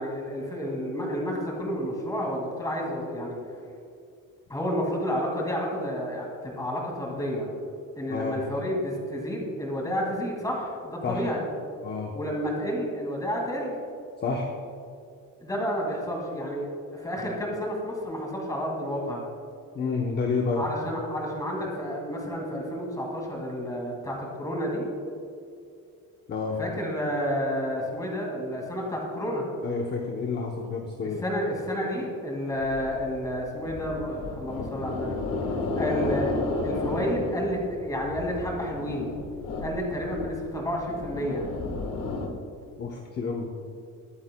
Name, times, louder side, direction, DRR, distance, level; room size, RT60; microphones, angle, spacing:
voice 1, 0.0-3.4 4.5-7.5 8.0-11.4 12.1-13.7 15.4-19.2 20.6-24.9 26.6-29.5 31.2-35.2 35.8-36.3 36.6-39.1 39.6-41.4, equal, 10° left, -1 dB, 2.1 m, -30 dB
voice 2, 8.1-8.4 11.0-11.2 11.8-12.1 14.2-14.5 19.7-20.6 26.3-26.6 29.6-31.3 35.5-35.8 42.8-43.5, left 4 dB, 30° left, 1 dB, 0.8 m, -29 dB
sound 1, 32.5-42.3, left 3 dB, 80° left, 1.5 m, -33 dB
21.0 x 8.6 x 2.2 m, 2.5 s
cardioid pair, 175°, 33 cm